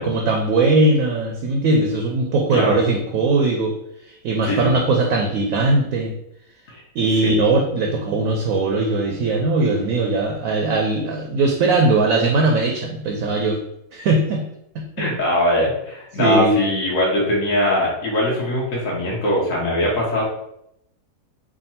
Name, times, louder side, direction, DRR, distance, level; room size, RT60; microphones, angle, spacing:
voice 1, 0.0-3.8 4.1-6.1 7.0-13.6 13.9-14.4 14.7-15.0 16.2-16.6, right 2 dB, 70° right, 2 dB, 0.9 m, -19 dB
voice 2, 15.0-20.2, left 1 dB, 60° left, -4 dB, 1.3 m, -21 dB
3.6 x 2.3 x 4.2 m, 0.78 s
omnidirectional pair, 1.7 m